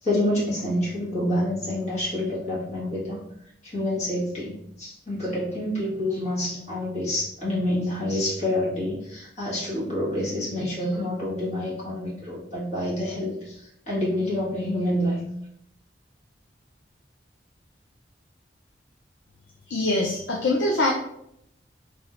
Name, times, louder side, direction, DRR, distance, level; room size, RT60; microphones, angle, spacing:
voice 1, 0.0-3.2 3.6-15.2, left 1 dB, 40° left, -8 dB, 1.5 m, -27 dB
voice 2, 19.7-20.9, left 2 dB, 85° left, -1 dB, 0.5 m, -23 dB
4.0 x 3.1 x 2.5 m, 0.76 s
head